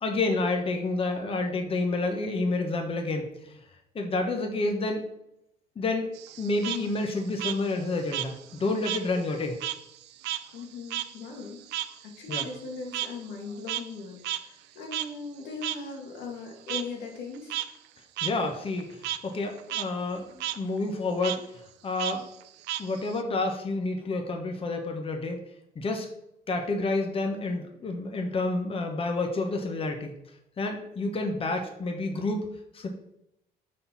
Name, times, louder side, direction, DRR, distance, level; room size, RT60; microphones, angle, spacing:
voice 1, 0.0-3.6 3.9-5.0 5.7-6.1 6.4-9.6 12.3-12.5 18.2-22.2 22.8-25.4 25.7-26.1 26.5-30.2 30.6-32.5 32.7-32.9, left 2 dB, 35° left, 4 dB, 1.3 m, -29 dB
Frog, 6.1-9.1 9.4-14.0 14.2-14.4 14.9-15.1 15.6-15.8 16.7-16.8 17.3-17.7 18.2-18.3 18.7-19.2 19.6-19.8 20.1-20.6 21.2-21.4 22.0-23.2, right 13 dB, 85° right, 0.6 m, -33 dB
voice 2, 10.5-11.6 12.0-17.6, left 4 dB, 85° left, 2 dB, 1.8 m, -39 dB
10.5 x 4.2 x 4.2 m, 0.79 s
cardioid pair, 110°, 17 cm